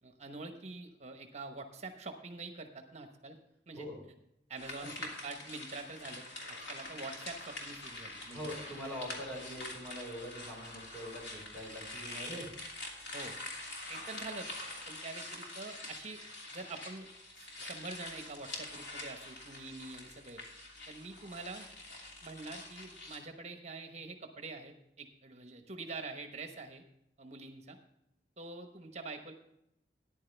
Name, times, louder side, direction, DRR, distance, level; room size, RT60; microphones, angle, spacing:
voice 1, 0.0-3.4 3.7-3.9 4.5-8.5 13.1-13.4 13.9-14.5 14.9-16.2 16.5-17.1 17.4-20.4 20.9-21.7 22.2-26.8 27.2-27.8 28.4-29.3, right 3 dB, 40° right, 6 dB, 1.1 m, -45 dB
sound 1, 4.6-23.2, left 2 dB, 85° left, 2.8 m, -45 dB
voice 2, 8.3-12.5, equal, 10° left, -3 dB, 3.5 m, -43 dB
13.5 x 10.5 x 3.4 m, 0.79 s
head